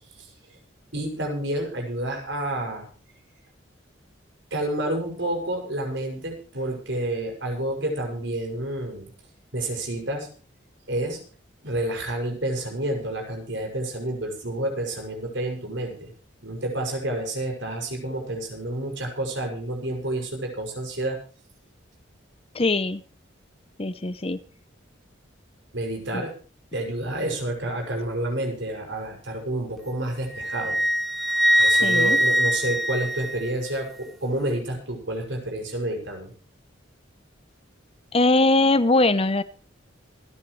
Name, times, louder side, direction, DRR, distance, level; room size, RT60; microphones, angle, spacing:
voice 1, 0.9-2.9 4.5-9.1 9.5-10.3 10.9-11.2 11.6-16.1 16.4-21.2 25.7-26.3 26.7-30.8 31.6-36.3, right 1 dB, 65° right, 2 dB, 6.5 m, -29 dB
voice 2, 22.5-23.0 23.8-24.4 26.1-26.2 31.8-32.2 38.1-39.4, left 2 dB, 30° left, 14 dB, 0.8 m, -21 dB
Wind instrument woodwind instrument, 30.3-33.8, equal, ahead, 0.7 m, -22 dB
27.0 x 10.5 x 3.3 m, 0.38 s
head